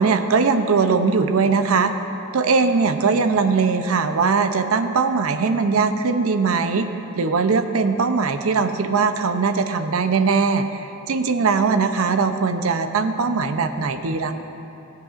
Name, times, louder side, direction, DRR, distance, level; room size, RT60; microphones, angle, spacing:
voice 1, 0.0-1.9 2.3-6.9 7.2-10.6 11.1-14.3, right 4 dB, 80° right, 8 dB, 0.6 m, -20 dB
17.5 x 7.7 x 2.5 m, 2.9 s
head